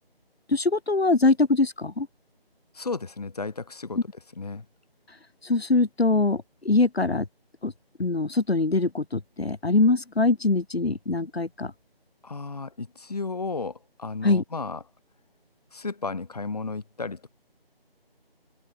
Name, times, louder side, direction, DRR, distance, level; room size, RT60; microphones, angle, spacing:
voice 1, 0.5-2.1 5.4-7.3 7.6-7.7 8.0-11.7 14.2-14.4, left 3 dB, 85° left, 2.0 m, -23 dB
voice 2, 2.7-4.0 4.4-4.7 12.2-14.8 15.7-17.3, left 4 dB, 40° left, 2.7 m, -33 dB
figure-of-eight pair, 170°, 30 cm